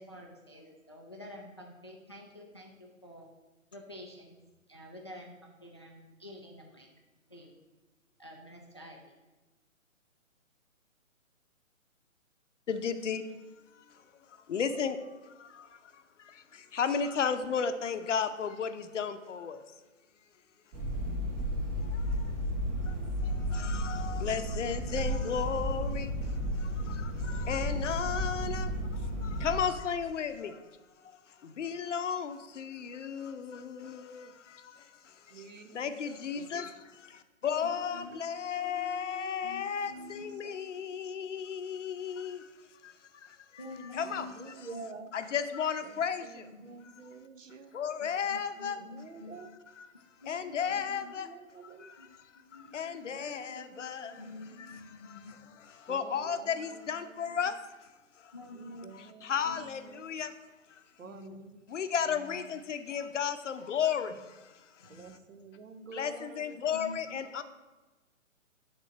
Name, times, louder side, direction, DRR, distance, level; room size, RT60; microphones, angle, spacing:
voice 1, 0.0-3.3 3.7-4.4 4.7-6.9 7.3-7.5 8.2-9.1 36.3-36.7 37.6-38.1 39.4-40.5 43.6-44.4 44.6-44.8 46.5-46.7 48.0-49.4 50.2-50.8 52.0-52.1 52.5-53.2 54.1-55.3 58.3-58.9 59.5-59.6 61.0-61.5 64.8-65.1 66.7-67.2, left 1 dB, 20° left, 1 dB, 0.3 m, -48 dB
voice 2, 12.7-13.2 14.5-15.0 15.2-19.6 21.9-22.3 22.8-23.0 23.2-30.7 31.4-35.4 35.7-42.5 42.8-42.9 43.2-44.3 45.1-46.5 47.7-48.8 49.8-49.9 50.3-51.3 51.8-52.0 52.7-54.2 54.6-55.4 55.6-57.6 58.2-58.3 58.9-60.3 61.7-64.4 64.8-65.0 65.9-67.4, left 7 dB, 60° left, 10 dB, 0.7 m, -34 dB
sound 1, 20.7-29.6, equal, 40° right, 2.1 m, -33 dB
voice 3, 35.3-36.3 37.5-40.1 40.4-40.5 44.0-45.1 45.8-47.7 48.8-49.5 50.7-51.9 53.1-54.8 55.9-57.5 58.5-60.1 61.0-61.7 61.9-62.8 64.9-66.7, right 4 dB, 70° right, 7 dB, 1.1 m, -50 dB
7.3 x 3.8 x 6.5 m, 1.2 s
figure-of-eight pair, 140°, 40 cm